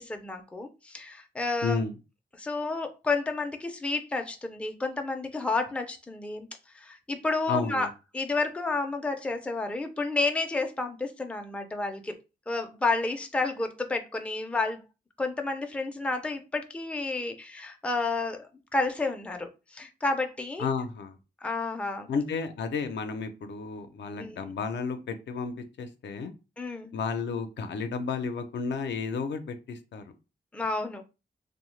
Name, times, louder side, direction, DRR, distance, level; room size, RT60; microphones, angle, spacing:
voice 1, 0.0-1.8 2.3-6.5 6.7-7.9 8.1-12.1 12.5-14.8 15.2-18.5 18.7-20.7 21.4-22.1 24.2-24.4 26.6-26.9 30.5-31.0, left 3 dB, 5° left, 0.4 m, -30 dB
voice 2, 1.6-1.9 7.5-7.9 20.6-21.2 22.1-26.3 26.9-30.0, left 5 dB, 80° left, 0.5 m, -32 dB
2.7 x 2.1 x 3.1 m
wide cardioid pair, 115°, 18 cm